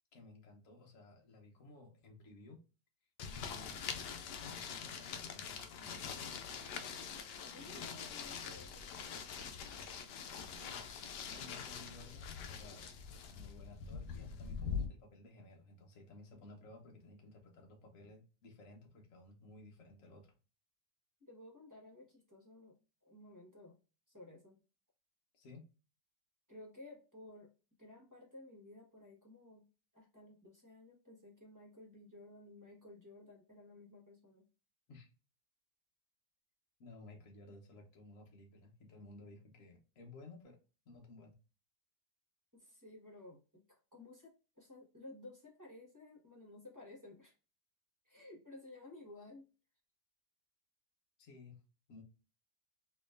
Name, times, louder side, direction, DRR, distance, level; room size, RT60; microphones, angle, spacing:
voice 1, 0.1-2.6 3.3-3.9 4.4-6.7 10.6-12.9 13.3-20.3 25.3-25.6 34.9-35.1 36.8-40.6 40.8-41.3 51.2-51.6 51.9-52.0, left 2 dB, 50° left, 1 dB, 1.3 m, -56 dB
sound 1, 3.2-14.9, left 6 dB, 75° left, 1.2 m, -44 dB
voice 2, 7.5-9.1 21.2-22.8 23.0-23.8 24.1-24.6 26.5-27.5 27.8-29.7 29.9-34.4 42.5-47.3 48.0-49.5, left 2 dB, 10° right, -3 dB, 1.1 m, -55 dB
4.3 x 2.9 x 2.4 m, 0.33 s
omnidirectional pair, 1.9 m